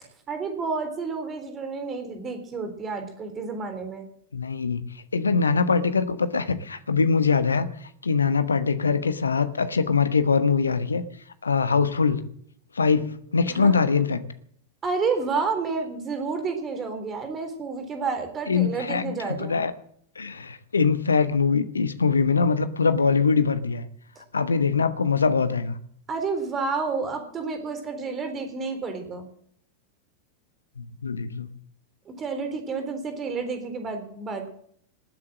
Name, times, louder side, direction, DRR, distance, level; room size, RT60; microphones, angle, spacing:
voice 1, 0.3-4.0 13.5-14.1 14.8-19.6 26.1-29.3 32.1-34.5, right 4 dB, 25° right, 7 dB, 3.8 m, -30 dB
voice 2, 4.3-4.8 5.1-7.7 8.0-11.0 11.4-12.2 12.7-14.2 18.5-19.1 19.4-19.7 20.2-23.8 24.3-25.8 30.8-31.5, left 5 dB, 75° left, 13 dB, 1.1 m, -23 dB
19.5 x 8.6 x 7.5 m, 0.65 s
figure-of-eight pair, 90°, 0 cm